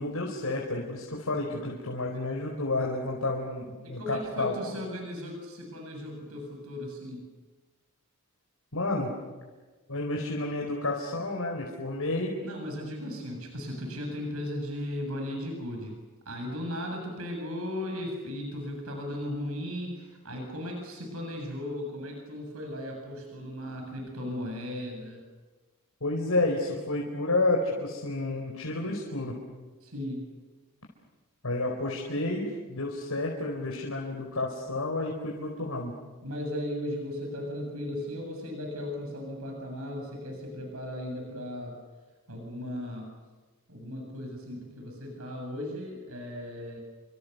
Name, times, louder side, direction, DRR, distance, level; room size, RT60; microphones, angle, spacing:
voice 1, 0.0-4.5 8.7-9.1 9.9-12.3 26.0-29.4 31.4-35.9, left 2 dB, 85° left, -1 dB, 4.6 m, -30 dB
voice 2, 3.8-7.2 12.4-15.9 16.3-25.2 29.8-30.3 36.2-41.8 42.3-43.1 43.7-46.8, left 1 dB, 75° right, 2 dB, 7.6 m, -36 dB
29.5 x 26.5 x 6.9 m, 1.3 s
head